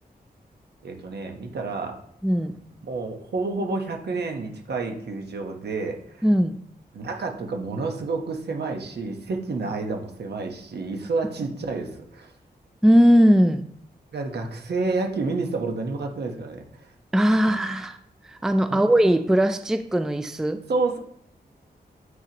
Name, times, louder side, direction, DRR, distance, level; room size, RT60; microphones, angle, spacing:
voice 1, 0.8-2.0 2.8-6.2 6.9-12.3 14.1-16.9 17.4-17.5 18.7-18.9 20.7-21.0, right 3 dB, 80° right, 3 dB, 1.1 m, -29 dB
voice 2, 2.2-2.5 6.2-6.6 12.8-13.7 17.1-18.0 18.3-20.6, equal, 5° right, 8 dB, 0.3 m, -19 dB
7.6 x 5.9 x 2.9 m, 0.68 s
wide cardioid pair, 150°, 17 cm